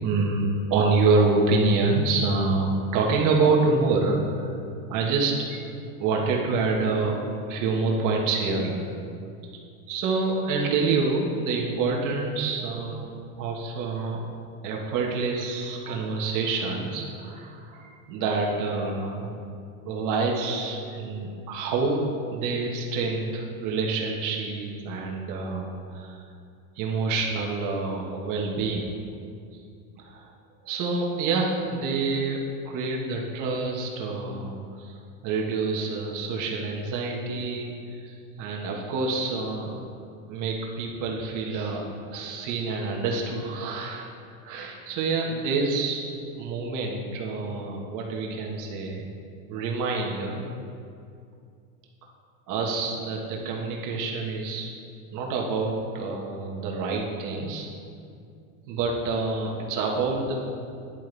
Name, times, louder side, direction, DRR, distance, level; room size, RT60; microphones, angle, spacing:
voice 1, 0.0-4.5 4.9-5.7 6.0-8.9 9.9-13.1 13.4-14.2 14.6-19.3 19.8-26.2 26.7-28.9 30.0-30.3 30.6-35.0 35.2-39.8 40.3-44.1 44.4-46.0 46.4-49.1 49.5-50.4 52.5-54.7 55.1-57.7 58.7-60.4, right 3 dB, 45° right, 0 dB, 1.7 m, -27 dB
11.5 x 10.5 x 3.5 m, 2.4 s
supercardioid pair, 135°, 43 cm